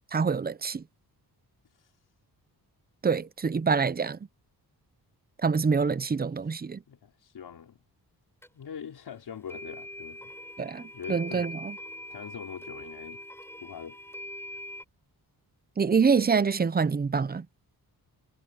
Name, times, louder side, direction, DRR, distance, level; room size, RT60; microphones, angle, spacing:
voice 1, 0.1-0.8 3.0-4.2 5.4-6.8 10.6-11.8 15.8-17.5, right 5 dB, 25° right, 0.6 m, -26 dB
voice 2, 6.9-7.8 8.5-10.3 10.8-11.5 12.1-13.2 13.6-14.0, left 7 dB, 75° left, 5.0 m, -43 dB
sound 1, 8.4-8.5 9.5-14.8, left 1 dB, 5° left, 6.7 m, -42 dB
wide cardioid pair, 130°, 38 cm